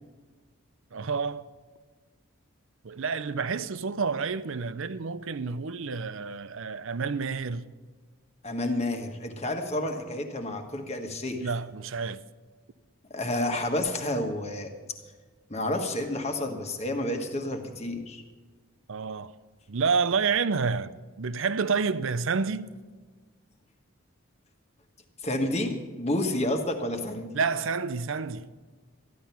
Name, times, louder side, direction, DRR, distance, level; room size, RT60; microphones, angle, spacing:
voice 1, 0.9-1.5 2.8-7.7 11.3-12.2 18.9-19.3 19.7-22.7 27.3-28.5, right 5 dB, 65° right, 0.5 m, -29 dB
voice 2, 8.4-11.5 13.1-14.7 15.5-18.2 25.2-27.3, left 1 dB, 30° left, 1.4 m, -30 dB
14.0 x 11.0 x 5.8 m
head